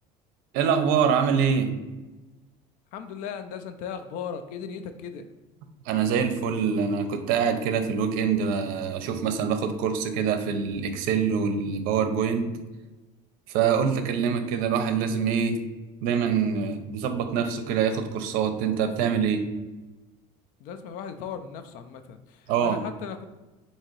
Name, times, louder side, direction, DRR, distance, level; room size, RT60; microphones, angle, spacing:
voice 1, 0.5-1.8 5.9-12.5 13.5-15.6 16.0-19.4 22.5-22.8, right 7 dB, 70° right, 8 dB, 0.6 m, -25 dB
voice 2, 2.9-5.3 20.6-23.2, left 7 dB, 60° left, 9 dB, 0.4 m, -37 dB
3.7 x 2.8 x 4.4 m, 1.1 s
cardioid pair, 155°, 15 cm